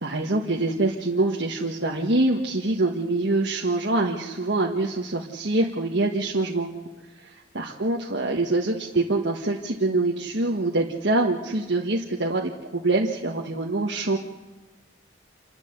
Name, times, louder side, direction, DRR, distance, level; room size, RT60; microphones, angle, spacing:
voice 1, 0.0-6.7 7.2-7.3 7.5-14.2, right 2 dB, 70° right, -1 dB, 1.6 m, -25 dB
28.0 x 12.5 x 8.2 m, 1.2 s
head